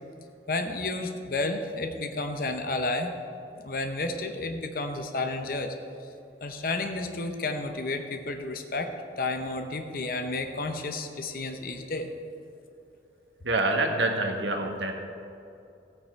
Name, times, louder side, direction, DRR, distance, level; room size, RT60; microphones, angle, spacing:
voice 1, 0.5-3.1 3.6-5.7 6.4-8.9 9.2-12.1, left 2 dB, 50° left, 6 dB, 0.7 m, -31 dB
voice 2, 13.4-14.9, right 2 dB, 85° right, 3 dB, 1.4 m, -26 dB
14.5 x 8.9 x 4.5 m, 2.6 s
head